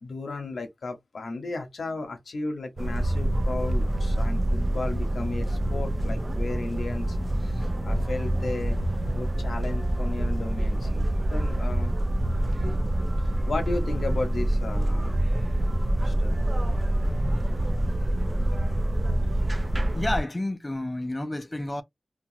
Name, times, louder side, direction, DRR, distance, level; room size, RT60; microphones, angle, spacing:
voice 1, 0.0-8.8 9.1-11.0 11.3-12.0 12.6-12.8 13.5-15.2 16.0-16.5, left 3 dB, 85° left, 0.7 m, -34 dB
sound 1, 2.8-20.2, right 1 dB, 40° right, 0.4 m, -26 dB
voice 2, 19.9-21.8, left 1 dB, 25° left, 0.4 m, -30 dB
2.9 x 2.2 x 2.6 m
wide cardioid pair, 60°, 0 cm